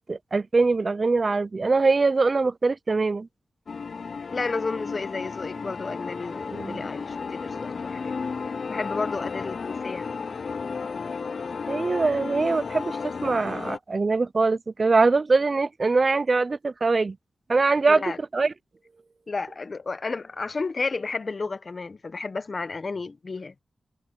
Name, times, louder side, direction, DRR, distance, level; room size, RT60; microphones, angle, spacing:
voice 1, 0.0-3.3 6.5-6.9 11.7-17.2 17.5-18.0 18.3-18.5, right 3 dB, 35° right, 0.3 m, -23 dB
sound 1, 3.7-13.8, left 5 dB, 55° left, 0.3 m, -33 dB
voice 2, 4.3-8.2 8.7-10.1 17.9-18.2 19.3-23.5, left 4 dB, 40° left, 1.0 m, -32 dB
wide cardioid pair, 130°, 0 cm